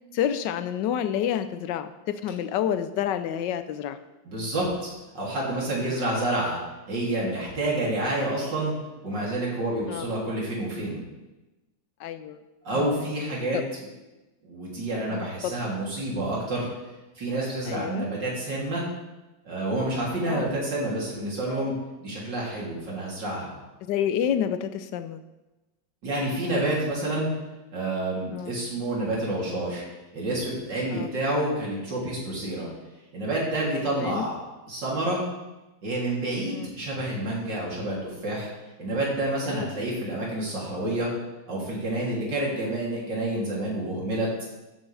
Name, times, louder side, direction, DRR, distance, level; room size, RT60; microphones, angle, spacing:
voice 1, 0.1-4.0 5.9-6.0 9.9-10.0 12.0-12.4 12.7-13.1 13.5-13.6 15.1-15.3 17.7-18.0 20.2-20.5 23.9-25.2 28.3-28.6 30.9-31.1 34.0-34.2 36.4-36.7 39.5-39.7, left 9 dB, 70° left, 11 dB, 1.3 m, -29 dB
voice 2, 4.3-6.6 6.9-8.7 9.0-11.0 12.6-13.6 14.4-16.7 17.2-18.9 19.5-21.7 22.0-23.5 26.0-27.3 27.7-29.8 30.1-32.7 33.1-34.4 34.7-35.2 35.8-38.5 38.8-41.1 41.5-44.3, right 1 dB, 60° right, -4 dB, 3.8 m, -28 dB
13.5 x 9.9 x 3.4 m, 1.1 s
omnidirectional pair, 2.1 m